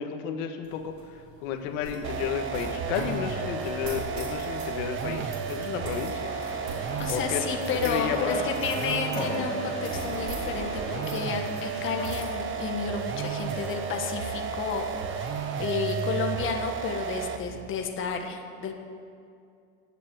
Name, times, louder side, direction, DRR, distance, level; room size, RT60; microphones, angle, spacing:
voice 1, 0.0-6.3 7.1-7.4 7.8-8.3, left 8 dB, 80° left, 6 dB, 1.5 m, -32 dB
sound 1, 0.6-17.8, right 2 dB, 50° right, 4.1 m, -44 dB
sound 2, 2.0-17.5, right 6 dB, 30° right, 1.1 m, -33 dB
sound 3, 6.3-12.0, left 2 dB, 15° left, 2.5 m, -37 dB
voice 2, 7.0-18.8, left 6 dB, 30° left, 3 dB, 1.5 m, -31 dB
16.5 x 8.4 x 10.0 m, 2.4 s
cardioid pair, 155°, 38 cm